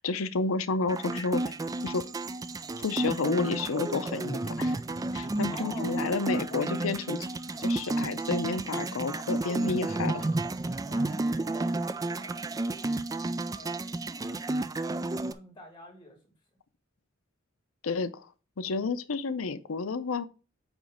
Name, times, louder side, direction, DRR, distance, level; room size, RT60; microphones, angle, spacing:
voice 1, 0.0-1.6 1.8-2.0 2.8-4.8 5.1-7.3 7.6-10.3 17.8-18.3 18.6-20.2, left 4 dB, 90° left, 0.6 m, -30 dB
sound 1, 0.9-15.3, right 2 dB, 15° right, 0.3 m, -31 dB
voice 2, 5.5-6.6 9.6-10.0 10.4-13.0 13.5-14.0 14.3-16.2, left 1 dB, 25° left, 2.4 m, -49 dB
8.9 x 3.1 x 5.0 m
head